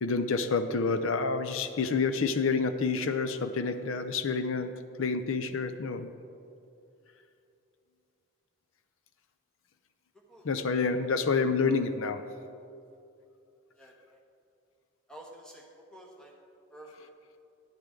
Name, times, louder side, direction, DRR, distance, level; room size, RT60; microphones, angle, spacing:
voice 1, 0.0-4.7 5.0-6.1 10.4-12.2, left 4 dB, 60° left, 9 dB, 0.5 m, -28 dB
voice 2, 13.8-14.2 15.1-15.6 15.9-16.3 16.7-17.1, right 1 dB, 5° left, -2 dB, 1.2 m, -50 dB
10.5 x 10.0 x 3.8 m, 2.6 s
head